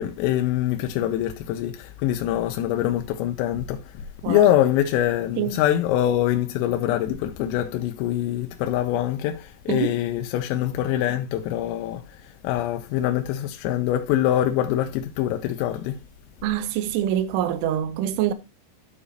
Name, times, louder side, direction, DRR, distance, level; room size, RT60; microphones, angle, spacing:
voice 1, 0.0-16.0, left 12 dB, 85° left, 3.3 m, -24 dB
voice 2, 16.4-18.3, right 11 dB, 85° right, 3.1 m, -25 dB
12.0 x 5.0 x 2.8 m
omnidirectional pair, 5.9 m